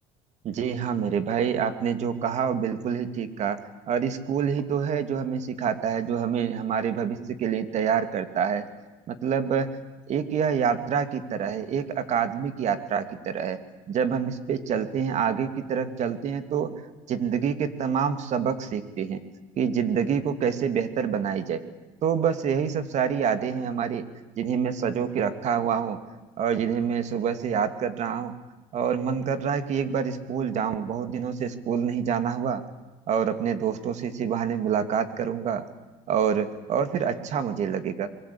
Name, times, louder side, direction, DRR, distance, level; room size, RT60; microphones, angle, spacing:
voice 1, 0.4-3.6 3.9-8.6 9.1-9.7 10.1-13.6 13.9-16.7 17.1-19.2 19.6-21.6 22.0-24.0 24.4-26.0 26.4-28.3 28.7-32.6 33.1-35.6 36.1-38.1, right 7 dB, 50° right, 10 dB, 2.7 m, -27 dB
24.5 x 23.5 x 8.7 m, 1.1 s
cardioid pair, 115°, 15 cm